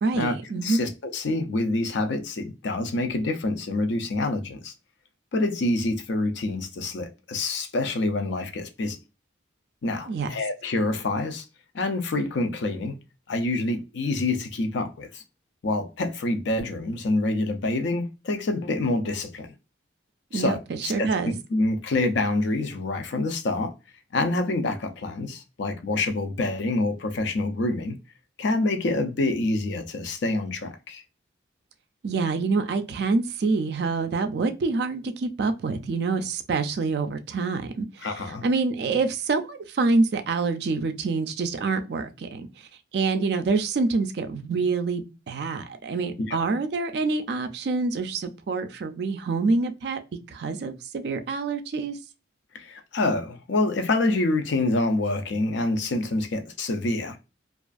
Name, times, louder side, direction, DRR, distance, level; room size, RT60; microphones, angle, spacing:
voice 1, 0.0-0.8 10.1-10.3 20.3-21.3 32.0-38.1 38.4-50.0 50.3-52.0, right 3 dB, 55° right, 0.3 m, -26 dB
voice 2, 0.6-4.7 5.3-9.0 9.8-11.4 11.7-13.0 13.3-15.2 15.6-19.5 20.3-23.7 24.1-28.0 28.4-31.0 38.0-38.4 46.2-46.4 52.5-57.3, left 2 dB, 70° left, 0.4 m, -27 dB
2.4 x 2.3 x 2.4 m
head